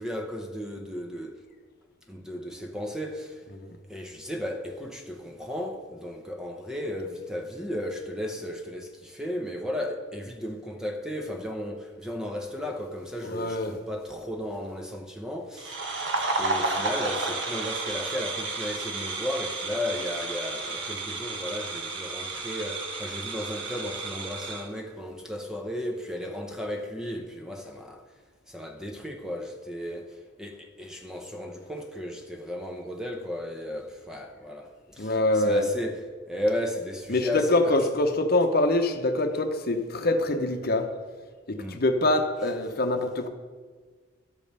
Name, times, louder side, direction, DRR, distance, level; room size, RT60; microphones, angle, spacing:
voice 1, 0.0-1.4 2.1-3.4 3.9-15.9 16.4-28.0 28.5-37.8 41.6-41.8, left 1 dB, 5° right, 0.7 m, -34 dB
voice 2, 13.2-13.8 35.0-35.7 37.1-40.9 41.5-43.3, left 2 dB, 50° left, 0.9 m, -24 dB
sound 1, 15.6-24.7, right 3 dB, 60° right, 1.3 m, -32 dB
12.0 x 5.3 x 6.7 m
head